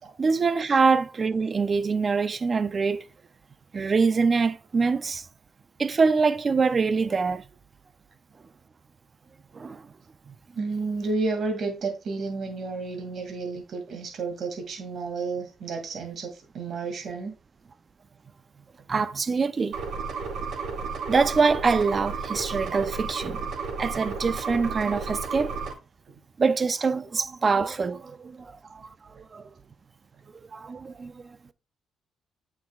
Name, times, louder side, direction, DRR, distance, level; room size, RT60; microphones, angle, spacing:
voice 1, 0.2-3.0 3.7-5.2 5.8-7.4 9.5-9.8 10.3-10.4 18.9-19.8 21.1-23.4 23.8-25.5 26.4-28.9 29.3-29.4 30.5-31.1, right 4 dB, 35° right, 0.5 m, -24 dB
voice 2, 10.5-17.3, right 3 dB, 60° right, 2.2 m, -31 dB
sound 1, 19.7-25.7, right 5 dB, 80° right, 3.9 m, -32 dB
8.5 x 6.1 x 2.3 m
cardioid pair, 90°, 0 cm